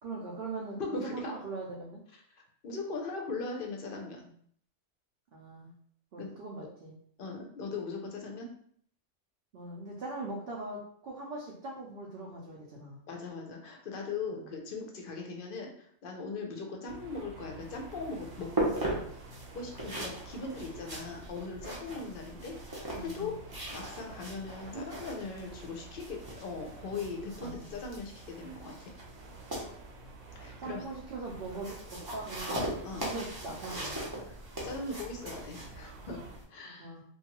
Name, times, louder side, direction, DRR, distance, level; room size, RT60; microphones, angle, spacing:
voice 1, 0.0-2.0 5.3-5.7 6.1-6.9 9.5-13.0 14.4-14.5 22.9-23.3 24.7-24.9 27.4-27.7 30.6-32.7 33.0-33.9 36.6-37.0, right 3 dB, 60° right, -3 dB, 0.7 m, -41 dB
voice 2, 0.8-1.3 2.3-4.3 6.2-6.3 7.2-8.5 13.1-18.5 19.5-23.3 23.7-28.9 30.4-30.8 32.8-33.1 34.6-36.2 36.5-37.0, left 3 dB, 60° left, 2 dB, 0.6 m, -39 dB
sound 1, 16.9-36.4, right 3 dB, 90° right, 1.0 m, -50 dB
sound 2, 17.6-36.4, right 1 dB, 25° right, 0.5 m, -40 dB
2.6 x 2.3 x 2.8 m, 0.62 s
omnidirectional pair, 1.2 m